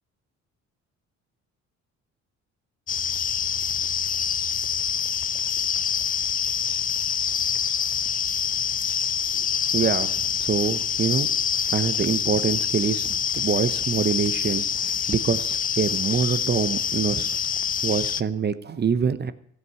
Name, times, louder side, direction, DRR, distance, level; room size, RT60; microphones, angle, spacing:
sound 1, 2.9-18.2, left 7 dB, 30° left, 0.4 m, -26 dB
voice 1, 9.7-11.3 11.7-17.4 17.8-19.3, right 6 dB, 35° right, 13 dB, 0.8 m, -25 dB
14.5 x 8.1 x 5.6 m, 0.70 s
cardioid pair, 90°, 30 cm